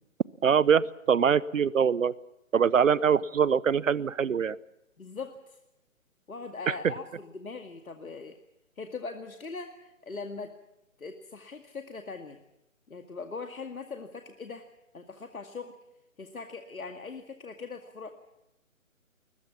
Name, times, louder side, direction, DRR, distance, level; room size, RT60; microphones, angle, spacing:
voice 1, 0.4-2.1 2.5-4.6 6.7-6.8, right 7 dB, 65° right, 21 dB, 0.8 m, -23 dB
voice 2, 4.0-4.4 5.0-5.6 6.3-8.4 8.8-10.6 11.0-12.4 12.9-14.7 14.9-15.8 16.2-18.1, left 4 dB, 80° left, 6 dB, 2.2 m, -41 dB
21.0 x 21.0 x 7.2 m, 0.89 s
figure-of-eight pair, 150°, 41 cm